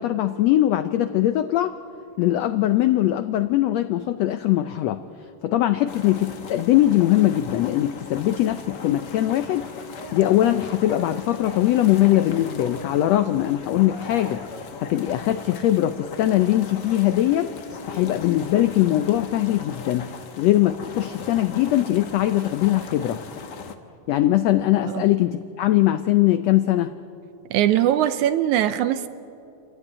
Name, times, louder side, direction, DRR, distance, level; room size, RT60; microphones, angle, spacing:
voice 1, 0.0-1.7 2.2-5.0 5.4-9.7 10.1-17.5 17.9-20.1 20.4-23.2 24.1-26.9, left 14 dB, 85° left, 10 dB, 1.4 m, -21 dB
sound 1, 5.9-23.7, left 5 dB, 60° left, 1.1 m, -39 dB
Speech / Cough, 9.6-11.8 12.1-12.9 13.8-15.1 16.0-18.3, left 2 dB, 35° left, 2.4 m, -41 dB
voice 2, 27.5-29.1, right 11 dB, 75° right, 12 dB, 2.0 m, -21 dB
28.5 x 15.0 x 9.8 m, 2.6 s
omnidirectional pair, 3.8 m